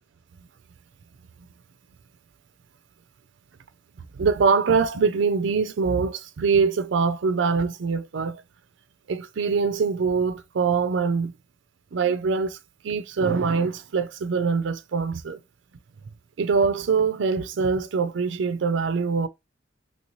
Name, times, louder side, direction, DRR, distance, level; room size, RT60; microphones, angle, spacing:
voice 1, 4.1-8.4 9.1-11.3 11.9-12.6 12.8-15.4 16.4-19.3, right 5 dB, 70° right, 0.4 m, -23 dB
3.0 x 2.7 x 3.1 m
head